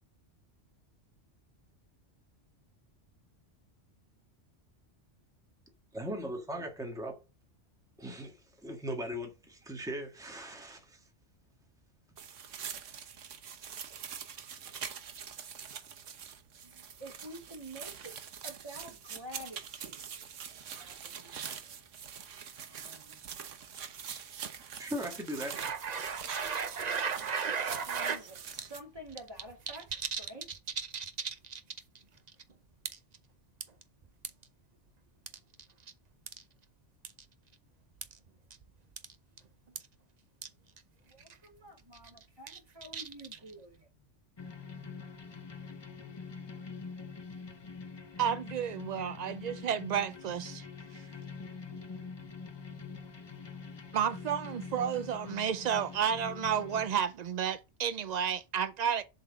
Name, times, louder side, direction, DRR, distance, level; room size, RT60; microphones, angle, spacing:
voice 1, 5.9-7.2 8.0-11.0 24.8-25.6, equal, 5° right, 1.6 m, -39 dB
sound 1, 12.2-28.8, right 7 dB, 90° right, 1.3 m, -44 dB
voice 2, 15.8-16.1 16.6-18.2 18.4-20.4 20.8-21.8 22.7-23.3 25.9-26.0 27.6-30.5 41.0-44.0, right 1 dB, 20° right, 3.0 m, -50 dB
sound 2, 25.5-28.2 28.6-28.7 29.0-32.0 32.3-32.4 32.9-33.2 33.6-34.4 35.3-35.9 36.3-36.4 37.0-37.2 38.0-38.2 38.5-38.6 39.0-39.1 39.4-39.5 39.8-39.9 40.4-40.5 40.8-40.9 41.2-41.5 41.9-43.5, right 6 dB, 40° right, 0.7 m, -36 dB
sound 3, 44.4-56.9, left 4 dB, 30° left, 0.6 m, -45 dB
voice 3, 48.2-50.7 53.9-59.0, right 8 dB, 70° right, 0.4 m, -31 dB
7.4 x 4.1 x 6.1 m
omnidirectional pair, 1.2 m